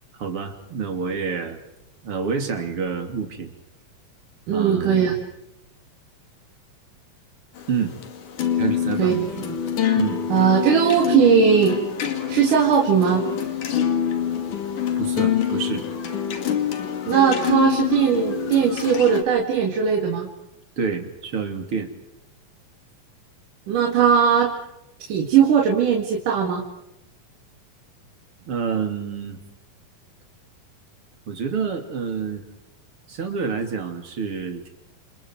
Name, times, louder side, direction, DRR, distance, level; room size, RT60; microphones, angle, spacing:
voice 1, 0.1-1.6 2.0-3.5 4.5-5.2 7.7-8.0 8.6-9.1 10.0-10.2 15.0-15.9 20.8-21.9 28.5-29.4 31.3-32.4 33.1-34.7, right 5 dB, 40° right, 5 dB, 3.6 m, -28 dB
voice 2, 4.5-5.2 9.0-9.6 10.3-11.8 12.3-13.2 17.1-20.3 23.7-24.5 25.0-26.6, right 7 dB, 65° right, 1 dB, 3.6 m, -19 dB
sound 1, 7.6-19.2, left 9 dB, 65° left, 3.7 m, -25 dB
30.0 x 28.5 x 4.8 m, 0.89 s
omnidirectional pair, 4.1 m